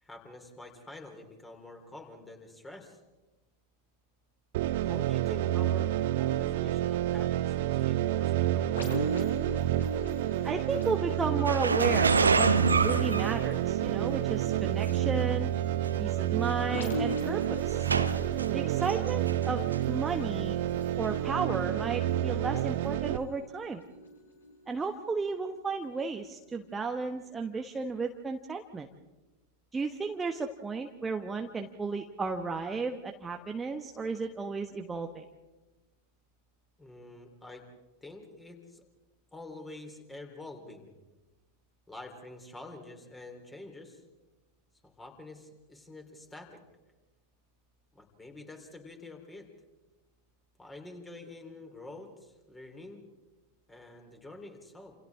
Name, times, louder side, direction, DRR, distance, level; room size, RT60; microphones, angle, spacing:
voice 1, 0.0-3.0 4.9-9.1 36.8-37.6 38.0-38.8 39.3-40.9 41.9-44.0 44.8-46.6 47.9-49.5 50.6-53.0 53.7-55.0, left 2 dB, 10° left, 3 dB, 4.0 m, -47 dB
sound 1, 4.5-23.2, right 13 dB, 50° right, 0.9 m, -29 dB
sound 2, 8.8-26.3 26.8-27.0, right 1 dB, 70° left, 5.2 m, -41 dB
voice 2, 10.4-12.5 12.8-15.5 16.0-17.9 18.5-20.6 21.0-23.8 24.7-28.9 29.7-35.2, right 4 dB, 15° right, 4 dB, 1.3 m, -34 dB
sound 3, 11.4-14.0 14.9-15.0 15.9-16.0 16.2-16.5 17.1-18.5 18.9-19.4 19.7-19.8 21.0-21.1, right 4 dB, 75° right, 1.2 m, -27 dB
29.5 x 28.5 x 3.7 m, 1.1 s
figure-of-eight pair, 90°, 0 cm